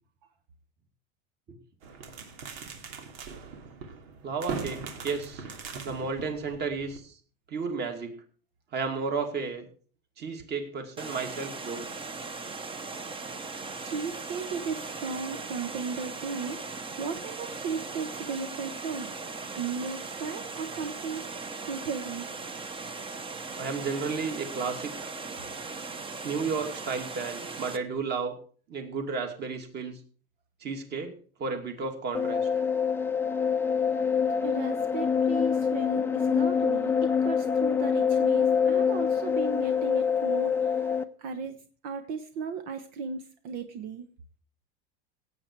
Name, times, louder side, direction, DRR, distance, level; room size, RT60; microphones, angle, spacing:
sound 1, 1.8-7.0, right 5 dB, 90° right, 2.9 m, -40 dB
voice 1, 4.2-5.4 5.8-7.1 7.5-8.1 8.7-9.6 10.2-11.9 23.6-25.1 26.2-28.3 28.7-30.0 30.6-31.1 31.4-32.5, right 4 dB, 35° right, 5 dB, 2.6 m, -33 dB
Water, 11.0-27.8, right 4 dB, 20° right, 0.9 m, -39 dB
voice 2, 13.2-16.6 17.0-19.1 19.5-22.2 34.4-40.8 41.2-44.1, right 5 dB, 70° right, 8 dB, 1.3 m, -36 dB
sound 2, 32.1-41.0, left 6 dB, 10° left, 0.6 m, -25 dB
16.5 x 8.7 x 4.7 m, 0.43 s
supercardioid pair, 140°, 29 cm